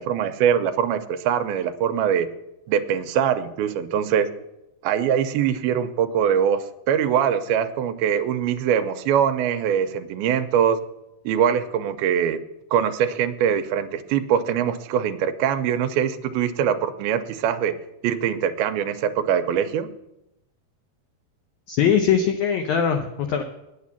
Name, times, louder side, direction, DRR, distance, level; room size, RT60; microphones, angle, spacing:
voice 1, 0.0-2.3 2.7-4.3 4.8-10.8 11.3-12.4 12.7-17.8 18.0-19.9, right 8 dB, 90° right, 9 dB, 2.5 m, -22 dB
voice 2, 21.7-23.4, left 7 dB, 90° left, 6 dB, 1.6 m, -21 dB
9.7 x 8.8 x 7.1 m, 0.90 s
omnidirectional pair, 4.4 m